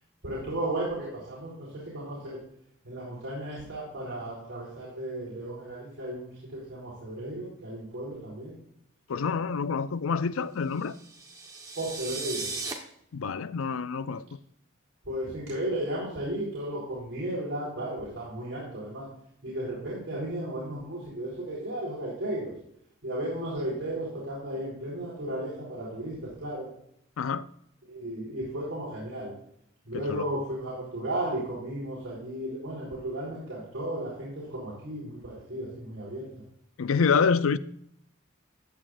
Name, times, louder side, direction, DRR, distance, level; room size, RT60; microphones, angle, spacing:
voice 1, 0.2-2.4 2.8-8.5 11.7-12.5 15.1-19.1 19.4-22.5 23.0-26.7 27.9-29.3 29.8-36.3, right 1 dB, 70° right, 4.0 m, -34 dB
voice 2, 9.1-11.0 13.1-14.2 27.2-27.5 29.9-30.3 36.8-37.6, left 5 dB, 85° left, 0.5 m, -27 dB
sound 1, 10.8-12.7, right 4 dB, 15° right, 1.1 m, -37 dB
15.0 x 8.8 x 2.5 m
head